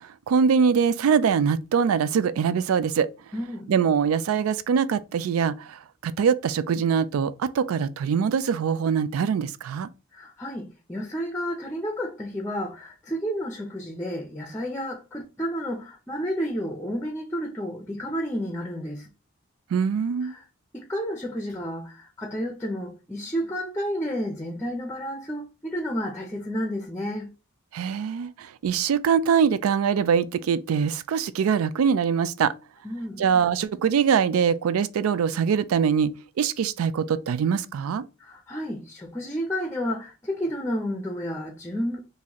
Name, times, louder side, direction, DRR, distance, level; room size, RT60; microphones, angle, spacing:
voice 1, 0.3-3.1 3.7-9.9 19.7-20.4 27.7-32.5 33.2-36.1 36.4-38.0, right 6 dB, 90° right, 0.3 m, -23 dB
voice 2, 3.3-3.7 10.1-19.1 20.2-20.4 20.7-27.3 32.8-33.2 38.2-42.0, equal, 10° left, 0.5 m, -31 dB
3.9 x 2.6 x 2.9 m
head